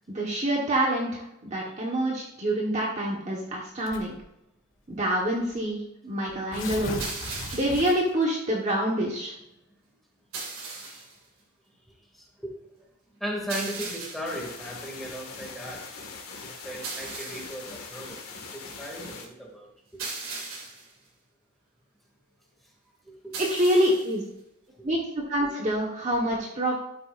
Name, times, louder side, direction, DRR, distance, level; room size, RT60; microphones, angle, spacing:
voice 1, 0.1-4.1 4.9-7.0 7.5-9.3 23.4-24.2 24.8-26.7, right 1 dB, 30° right, -2 dB, 1.4 m, -26 dB
voice 2, 1.6-2.1 10.8-11.1 12.1-12.6 13.2-15.8 16.4-18.2 18.5-20.0 23.0-23.3, equal, ahead, -3 dB, 2.5 m, -37 dB
Tearing, 3.9-4.3 5.1-5.2 5.5-5.6 6.3-8.2, left 2 dB, 60° left, 1.7 m, -37 dB
sound 1, 7.0-7.9 10.3-11.2 13.5-14.4 16.8-17.7 20.0-20.9 23.3-24.2, right 3 dB, 75° right, 2.6 m, -37 dB
sound 2, 14.2-19.2, left 4 dB, 90° left, 2.0 m, -42 dB
12.5 x 8.0 x 2.6 m, 0.82 s
head